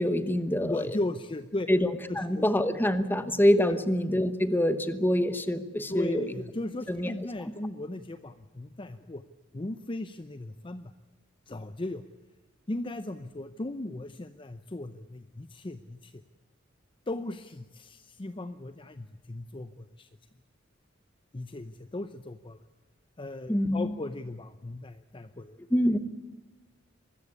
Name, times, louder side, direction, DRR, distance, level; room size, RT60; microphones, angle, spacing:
voice 1, 0.0-1.0 1.7-6.3 6.9-7.1 23.5-23.9 25.7-26.0, left 1 dB, 10° left, 12 dB, 1.0 m, -25 dB
voice 2, 0.6-1.7 2.1-2.5 3.7-3.8 5.9-9.2 9.5-10.9 11.5-12.0 12.7-16.2 17.1-20.1 21.3-22.6 23.2-25.6, left 2 dB, 25° left, 11 dB, 0.6 m, -37 dB
23.0 x 14.0 x 9.8 m, 1.1 s
head